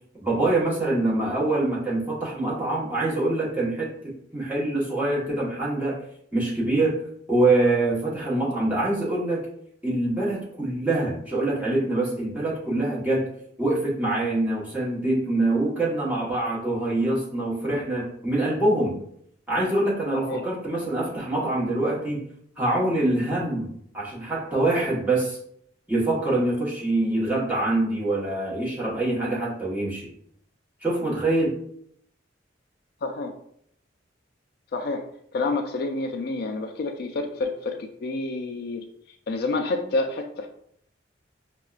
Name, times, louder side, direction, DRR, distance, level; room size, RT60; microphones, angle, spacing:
voice 1, 0.2-6.0 6.3-7.0 7.3-9.5 9.8-13.3 13.6-19.0 19.5-22.2 22.6-25.4 25.9-30.1 30.8-31.5, right 2 dB, 10° right, -7 dB, 1.1 m, -25 dB
voice 2, 20.1-20.4 33.0-33.3 34.7-35.1 35.3-40.5, left 3 dB, 55° left, 5 dB, 0.3 m, -29 dB
5.2 x 2.1 x 2.4 m, 0.68 s
head